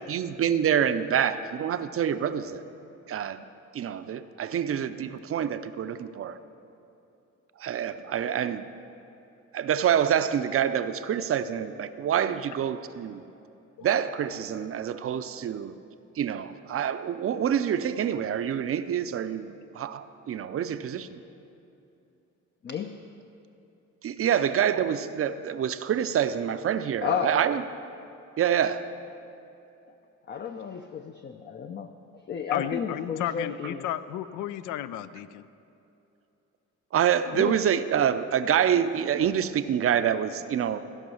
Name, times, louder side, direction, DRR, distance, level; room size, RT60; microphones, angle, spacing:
voice 1, 0.1-2.6 3.1-3.4 3.7-6.4 7.6-8.7 9.5-13.2 13.8-15.7 16.2-21.2 24.0-27.6 28.4-28.9 36.9-40.8, right 9 dB, 50° right, 12 dB, 0.5 m, -26 dB
voice 2, 22.6-23.0 27.0-27.6 29.9-30.0 30.3-33.9 37.3-37.6, left 7 dB, 35° left, 6 dB, 0.5 m, -33 dB
voice 3, 32.5-35.5, left 12 dB, 85° left, 14 dB, 0.5 m, -33 dB
15.0 x 5.3 x 6.3 m, 2.8 s
cardioid pair, 90°, 30 cm